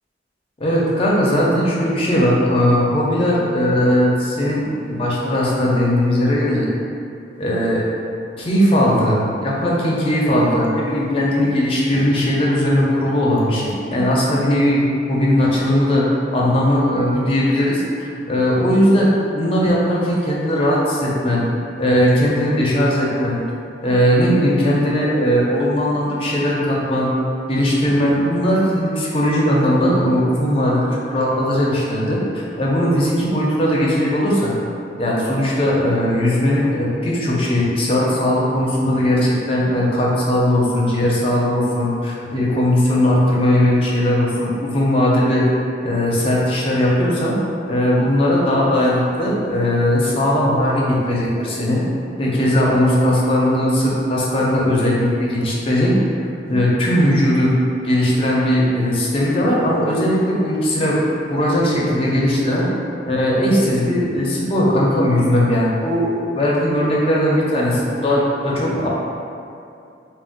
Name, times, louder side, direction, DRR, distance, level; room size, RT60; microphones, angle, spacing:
voice 1, 0.6-6.7 7.4-7.8 8.4-21.4 21.8-23.4 23.8-27.1 27.5-34.5 35.0-45.5 45.8-47.4 47.7-51.8 52.2-55.9 56.5-57.5 57.8-62.6 63.0-68.9, equal, 30° left, -5 dB, 0.5 m, -18 dB
2.4 x 2.0 x 3.8 m, 2.6 s
head